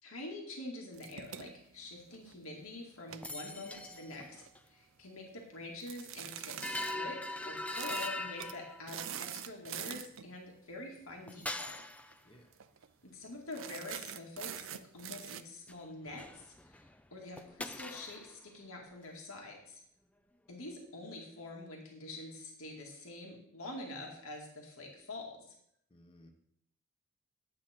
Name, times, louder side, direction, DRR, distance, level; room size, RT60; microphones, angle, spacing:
voice 1, 0.0-4.4 4.7-7.2 7.5-11.7 13.0-19.8 20.5-25.4, left 2 dB, 85° left, -1 dB, 2.2 m, -46 dB
sound 1, 0.9-2.5 3.0-4.5 5.8-7.0 7.7-8.1 8.4-8.6 8.9-10.3 11.6-11.8 12.1-12.2 12.5-12.9 13.5-15.4, right 10 dB, 65° right, 0.6 m, -44 dB
sound 2, 3.2-4.3 4.5-4.6 6.6-9.1 11.3-12.1 15.7-15.8 16.1-17.0 17.4-18.4, left 2 dB, 5° left, 0.4 m, -41 dB
voice 2, 25.9-26.3, left 1 dB, 25° left, 3 dB, 1.2 m, -59 dB
11.0 x 8.3 x 4.4 m, 0.73 s
head